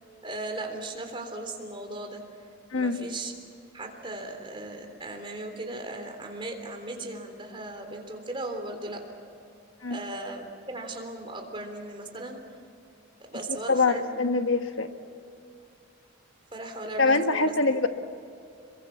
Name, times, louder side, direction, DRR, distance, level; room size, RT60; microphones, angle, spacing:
voice 1, 0.2-2.2 2.7-3.3 3.7-9.0 9.9-12.4 13.3-14.1 16.5-17.8, right 2 dB, 25° right, 3 dB, 3.5 m, -37 dB
voice 2, 13.7-14.9 17.0-17.9, left 3 dB, 80° left, 7 dB, 1.4 m, -24 dB
27.5 x 23.0 x 7.3 m, 2.6 s
head